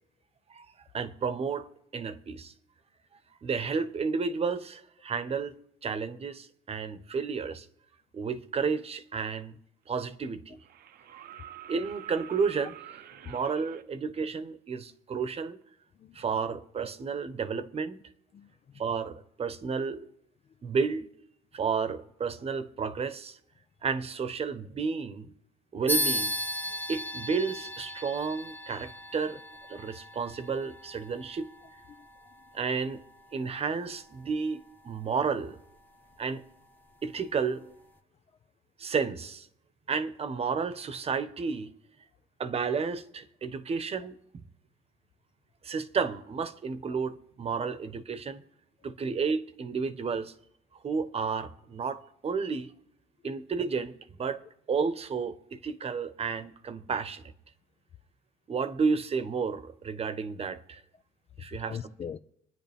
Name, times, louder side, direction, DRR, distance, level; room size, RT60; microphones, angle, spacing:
voice 1, 0.9-2.5 3.4-7.7 8.1-9.6 9.9-10.6 11.7-12.7 13.2-15.6 16.1-18.0 18.8-20.1 20.6-21.1 21.5-23.4 23.8-25.3 25.7-26.3 26.9-29.4 29.7-31.5 32.5-33.0 33.3-35.6 36.2-36.4 37.0-37.7 38.8-39.5 39.9-41.7 42.4-44.4 45.6-48.4 48.8-50.3 50.8-52.7 53.2-53.9 54.2-54.4 54.7-57.2 58.5-60.8 61.4-61.8, right 5 dB, 35° right, 1.1 m, -32 dB
sound 1, 9.5-9.6 10.6-13.8 15.6-15.7, right 11 dB, 65° right, 0.9 m, -47 dB
voice 2, 15.9-16.3 18.3-18.8 26.7-26.8 29.3-29.4 29.7-29.8 31.9-32.1 33.8-34.0 47.5-47.7 53.2-53.3 61.7-62.2, left 8 dB, 40° left, 0.6 m, -43 dB
sound 2, 25.9-35.8, left 1 dB, 10° left, 1.3 m, -37 dB
25.5 x 10.0 x 3.6 m
cardioid pair, 110°, 17 cm